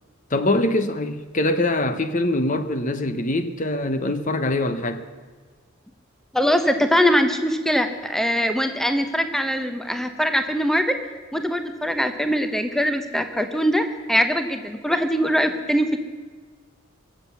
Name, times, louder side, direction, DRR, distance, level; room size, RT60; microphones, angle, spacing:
voice 1, 0.3-5.1, left 1 dB, 35° left, 0.8 m, -23 dB
voice 2, 6.3-11.0 11.3-16.0, equal, ahead, 0.8 m, -22 dB
23.0 x 7.6 x 7.0 m
head